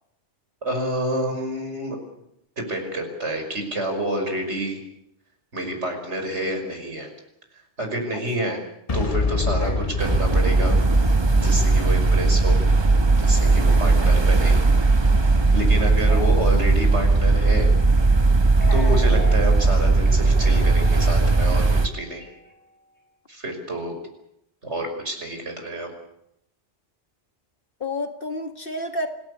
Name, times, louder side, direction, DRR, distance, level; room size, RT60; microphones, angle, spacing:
voice 1, 0.6-2.0 2.6-4.8 5.5-7.1 7.8-8.6 8.9-12.6 13.1-14.6 15.2-17.7 18.3-18.4 18.7-21.7 21.9-22.2 23.3-23.9 24.6-25.9, right 1 dB, 75° right, 4 dB, 5.9 m, -28 dB
voice 2, 8.1-8.6 9.6-9.8 13.7-14.1 15.8-16.3 18.7-19.1 27.8-29.1, left 1 dB, 50° left, 6 dB, 2.3 m, -32 dB
Boom, 8.9-14.8, left 3 dB, 35° left, 1.1 m, -29 dB
sound 1, 10.0-21.9, right 3 dB, 25° right, 1.0 m, -18 dB
sound 2, 18.5-22.6, right 3 dB, 10° left, 5.1 m, -40 dB
26.5 x 17.0 x 8.4 m, 0.80 s
omnidirectional pair, 1.2 m